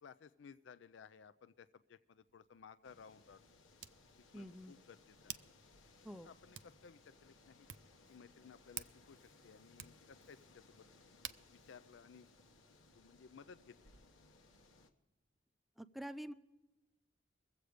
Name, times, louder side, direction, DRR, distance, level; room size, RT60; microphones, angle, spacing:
voice 1, 0.0-3.4 4.2-5.4 6.1-7.7 8.1-10.9 11.5-12.3 12.9-13.8, left 6 dB, 65° left, 13 dB, 0.4 m, -58 dB
Hands, 2.2-13.0, right 11 dB, 60° right, 0.5 m, -55 dB
sound 1, 2.8-14.9, left 3 dB, 90° left, 1.3 m, -65 dB
voice 2, 4.3-4.7 6.0-6.3 15.8-16.3, equal, ahead, 12 dB, 0.5 m, -47 dB
22.5 x 7.9 x 5.0 m, 1.0 s
head